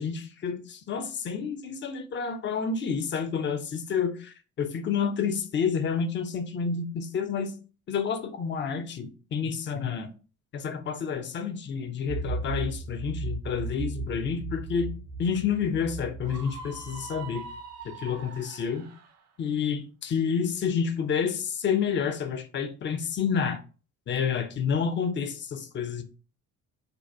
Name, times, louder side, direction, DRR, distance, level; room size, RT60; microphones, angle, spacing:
voice 1, 0.0-7.5 7.9-10.1 10.5-14.9 15.2-17.4 17.8-18.9 19.4-23.6 24.1-26.0, left 6 dB, 25° left, 0.5 m, -29 dB
sound 1, 12.1-17.8, right 3 dB, 70° right, 0.9 m, -36 dB
Screaming, 16.2-19.2, right 4 dB, 35° right, 0.5 m, -43 dB
2.6 x 2.2 x 3.2 m
figure-of-eight pair, 45°, 47 cm